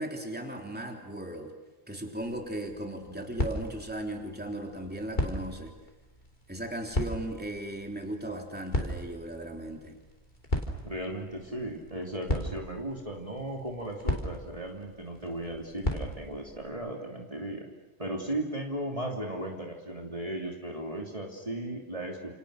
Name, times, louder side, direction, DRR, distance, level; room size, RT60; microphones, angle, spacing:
voice 1, 0.0-1.5 1.9-5.7 6.5-10.0, right 1 dB, 10° right, 2 dB, 3.4 m, -37 dB
sound 1, 2.2-16.7, left 1 dB, 45° left, 3.6 m, -37 dB
voice 2, 10.8-17.7 18.0-22.4, right 1 dB, 30° right, 0 dB, 3.2 m, -36 dB
29.5 x 29.0 x 6.6 m, 1.1 s
omnidirectional pair, 1.1 m